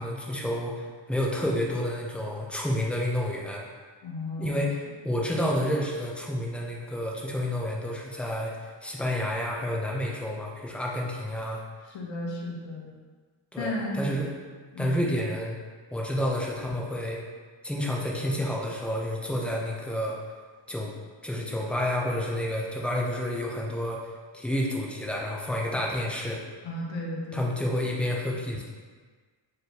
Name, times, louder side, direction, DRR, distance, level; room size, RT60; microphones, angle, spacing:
voice 1, 0.0-3.6 4.4-11.6 13.5-14.3 14.8-15.6 15.9-17.2 17.6-20.2 20.7-20.9 21.2-24.0 24.3-26.4 27.3-28.6, left 1 dB, 5° left, -3 dB, 0.4 m, -29 dB
voice 2, 4.0-4.6 11.9-12.9 13.6-14.1 14.7-15.1 26.6-27.5, left 1 dB, 75° left, -2 dB, 0.8 m, -34 dB
4.1 x 3.3 x 2.8 m, 1.5 s
wide cardioid pair, 145°, 45 cm